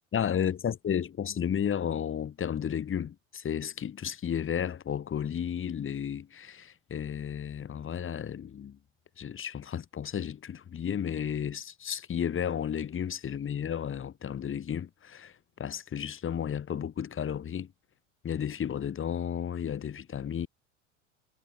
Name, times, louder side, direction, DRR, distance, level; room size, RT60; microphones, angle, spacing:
voice 1, 0.1-8.8 9.2-17.7 18.2-20.5, left 8 dB, 30° left, 6.8 m, -33 dB
hypercardioid pair, 80°, 38 cm